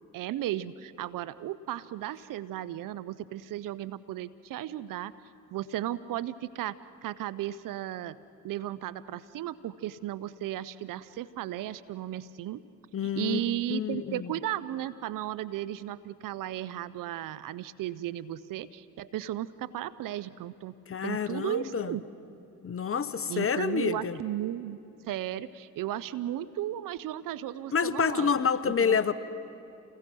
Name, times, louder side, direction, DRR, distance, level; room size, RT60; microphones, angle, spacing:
voice 1, 0.1-5.1 5.5-6.8 7.0-8.2 8.4-12.6 13.2-20.7 21.0-22.0 23.3-24.8 25.0-28.3 28.6-29.0, right 13 dB, 65° right, 18 dB, 0.8 m, -35 dB
voice 2, 12.9-13.4 13.7-14.3 20.9-21.9 22.6-24.2 27.7-29.1, left 6 dB, 40° left, 14 dB, 1.2 m, -28 dB
28.5 x 20.5 x 6.2 m, 2.6 s
hypercardioid pair, 55°, 34 cm